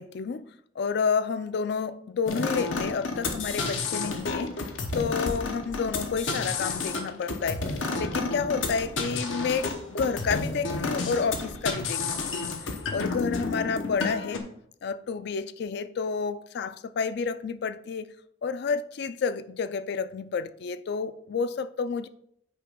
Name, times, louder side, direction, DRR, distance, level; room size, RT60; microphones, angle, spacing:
voice 1, 0.0-4.6 4.9-12.0 12.3-12.6 12.9-14.4 14.8-18.1 18.4-22.1, left 5 dB, 60° left, 0.3 m, -30 dB
sound 1, 2.3-14.4, left 3 dB, 80° left, 0.9 m, -31 dB
8.6 x 3.0 x 5.1 m
head